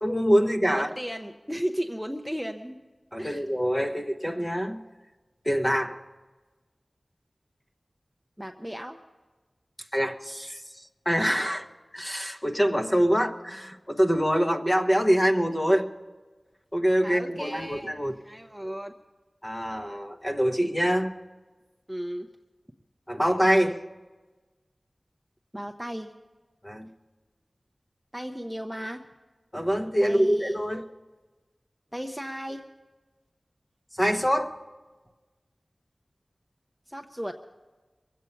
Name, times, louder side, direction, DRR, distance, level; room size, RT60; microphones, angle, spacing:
voice 1, 0.0-0.9 3.1-4.8 5.4-6.0 9.9-10.6 11.0-11.7 11.9-15.9 16.7-18.1 19.4-21.1 23.1-23.8 26.6-26.9 29.5-30.8 34.0-34.6, equal, 20° left, 4 dB, 1.2 m, -24 dB
voice 2, 0.7-2.8 3.2-3.5 8.4-9.0 17.0-17.9 18.2-18.9 21.9-22.3 25.5-26.1 28.1-29.0 30.0-30.6 31.9-32.6 36.9-37.4, equal, 5° right, 4 dB, 0.7 m, -35 dB
22.5 x 8.2 x 5.8 m, 1.3 s
wide cardioid pair, 40°, 0 cm